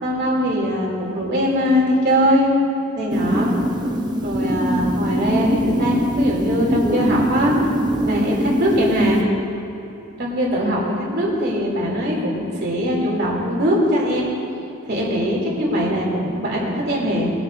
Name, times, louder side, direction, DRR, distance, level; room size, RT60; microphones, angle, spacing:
voice 1, 0.0-2.5 2.9-3.5 4.2-7.5 8.0-9.2 10.2-14.3 14.8-17.3, equal, 50° right, -3 dB, 3.1 m, -21 dB
sound 1, 3.1-9.2, equal, 20° right, 0.8 m, -23 dB
22.0 x 10.5 x 2.7 m, 2.9 s
head